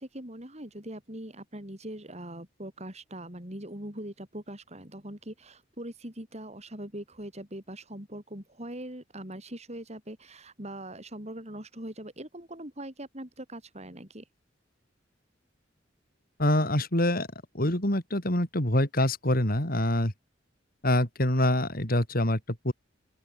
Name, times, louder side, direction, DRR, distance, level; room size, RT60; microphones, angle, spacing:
voice 1, 0.0-14.2, right 1 dB, 35° right, 7.9 m, -41 dB
voice 2, 16.4-17.3 17.5-20.1 20.8-22.7, left 1 dB, 50° left, 5.1 m, -25 dB
open air
head